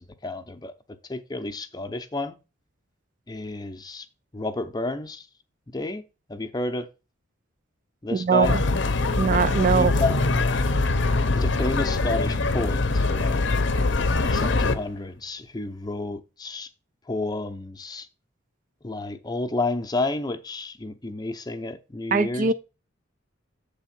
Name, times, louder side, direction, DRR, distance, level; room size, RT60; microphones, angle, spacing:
voice 1, 0.2-0.7 1.1-2.4 3.3-4.1 4.3-5.3 5.7-6.0 6.3-6.9 8.0-8.6 9.7-10.2 11.3-13.5 14.3-16.7 17.1-18.1 18.8-22.5, left 2 dB, 20° left, 0.6 m, -30 dB
voice 2, 8.1-8.6 9.2-9.9 22.1-22.5, right 5 dB, 40° right, 0.4 m, -21 dB
sound 1, 8.4-14.8, left 3 dB, 60° left, 0.7 m, -23 dB
7.9 x 3.5 x 5.8 m
head